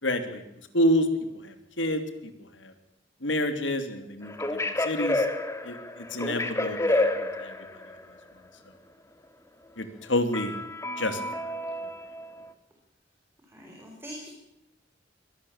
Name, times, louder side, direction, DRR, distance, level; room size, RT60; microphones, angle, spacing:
voice 1, 0.0-0.4 0.7-1.1 1.4-2.0 2.4-2.7 3.2-4.3 4.8-5.3 5.6-7.8 9.8-10.5 11.0-11.5, left 1 dB, 80° left, 8 dB, 3.1 m, -28 dB
sound 1, 4.2-7.9 10.3-12.5, left 2 dB, 15° left, 2.0 m, -29 dB
voice 2, 13.4-14.3, equal, 10° right, 0 dB, 4.7 m, -43 dB
23.0 x 18.0 x 7.3 m, 0.86 s
head